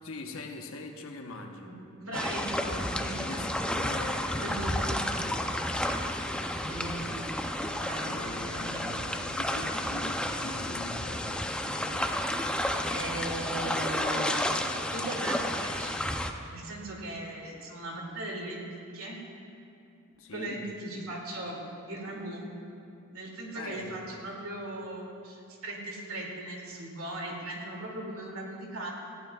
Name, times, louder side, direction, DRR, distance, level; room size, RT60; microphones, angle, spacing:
voice 1, 0.0-1.7 3.1-5.7 8.1-12.2 20.2-20.6 23.5-24.1, left 2 dB, 75° left, 3 dB, 1.1 m, -43 dB
voice 2, 2.0-3.9 4.4-5.1 6.6-8.8 12.9-14.4 14.9-16.0 16.5-18.6 18.9-19.2 20.3-21.6 21.9-22.5 23.1-28.9, right 1 dB, 85° right, -1 dB, 2.5 m, -38 dB
sound 1, 2.1-16.3, left 1 dB, 5° left, 0.5 m, -31 dB
19.0 x 15.0 x 2.4 m, 2.6 s
head